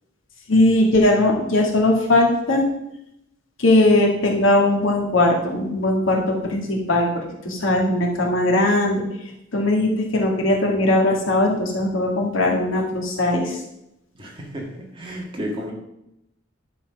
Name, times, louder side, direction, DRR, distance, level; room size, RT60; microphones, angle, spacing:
voice 1, 0.5-2.6 3.6-9.0 9.5-13.6, left 1 dB, 85° left, 0 dB, 2.0 m, -19 dB
voice 2, 14.2-15.7, equal, 25° right, -1 dB, 1.9 m, -32 dB
10.5 x 4.2 x 5.8 m, 0.85 s
head